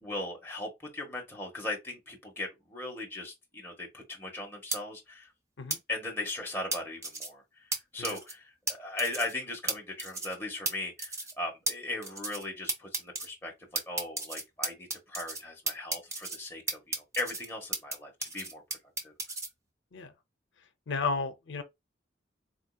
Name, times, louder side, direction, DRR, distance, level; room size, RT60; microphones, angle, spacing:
voice 1, 0.0-5.3 5.9-7.6 7.9-18.6 19.0-19.1, left 2 dB, 15° left, 1.1 m, -38 dB
sound 1, 4.7-4.8 5.7-5.8 6.7-7.3 7.7-7.8 8.0-8.3 8.7-8.8 9.0-9.3 9.7-9.8 10.0-10.3 10.7-10.8 11.0-11.3 11.7-11.8 12.0-12.4 12.7-13.3 13.7-15.4 15.7-16.4 16.7-17.9 18.2-19.5, right 2 dB, 15° right, 0.5 m, -33 dB
voice 2, 20.9-21.6, left 4 dB, 85° left, 0.6 m, -33 dB
4.0 x 2.7 x 2.3 m
head